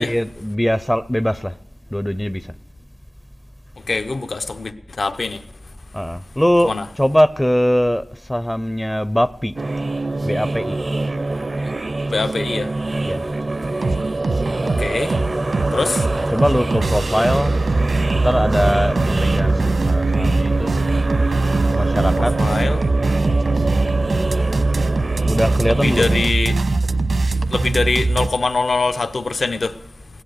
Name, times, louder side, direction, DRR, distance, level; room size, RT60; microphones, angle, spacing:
voice 1, 0.0-1.6 1.9-2.6 5.9-6.7 7.0-9.5 10.2-10.8 13.0-13.3 15.7-15.9 16.3-17.6 18.2-20.7 21.7-22.3 25.2-26.1, equal, 10° left, 0.4 m, -21 dB
voice 2, 3.9-5.4 6.6-6.9 11.6-11.7 12.1-12.7 14.6-15.2 15.7-16.1 22.2-22.8 25.6-26.5 27.5-29.8, left 3 dB, 70° left, 0.7 m, -23 dB
sound 1, 9.6-26.3, right 2 dB, 45° right, 0.4 m, -25 dB
sound 2, 13.6-28.3, right 3 dB, 90° right, 1.0 m, -21 dB
16.5 x 11.5 x 6.6 m
wide cardioid pair, 75°, 0 cm